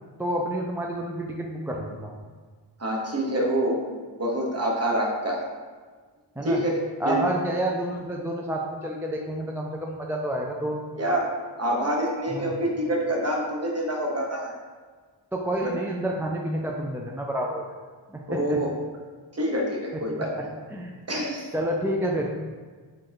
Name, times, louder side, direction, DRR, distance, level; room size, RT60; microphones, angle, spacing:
voice 1, 0.2-2.1 6.4-6.6 7.0-10.8 12.3-12.5 15.3-17.6 18.1-18.6 19.9-20.9 21.5-22.3, right 1 dB, 5° right, -1 dB, 0.3 m, -29 dB
voice 2, 2.8-5.4 6.4-7.2 11.0-11.3 11.6-14.5 15.6-15.7 18.4-18.7 19.3-20.3 21.1-21.5, right 1 dB, 30° right, -2 dB, 1.1 m, -26 dB
3.7 x 2.6 x 4.6 m, 1.5 s
cardioid pair, 55°, 47 cm